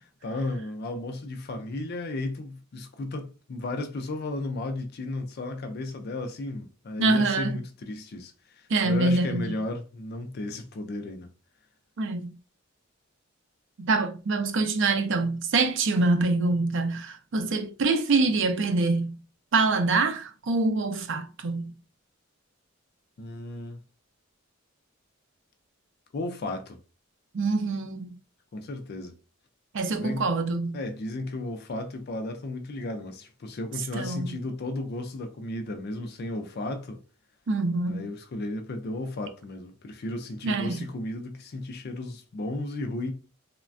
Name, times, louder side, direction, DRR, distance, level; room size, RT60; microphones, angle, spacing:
voice 1, 0.2-11.3 23.2-23.8 26.1-26.8 28.5-29.2 30.0-30.3 30.7-37.0 37.9-43.1, left 2 dB, 50° left, 0.4 m, -34 dB
voice 2, 7.0-7.6 8.7-9.5 12.0-12.3 13.8-19.2 19.5-21.7 27.3-28.2 29.7-30.8 33.9-34.3 37.5-38.1 40.4-40.8, right 3 dB, 65° right, 0.5 m, -25 dB
3.2 x 2.1 x 2.4 m
head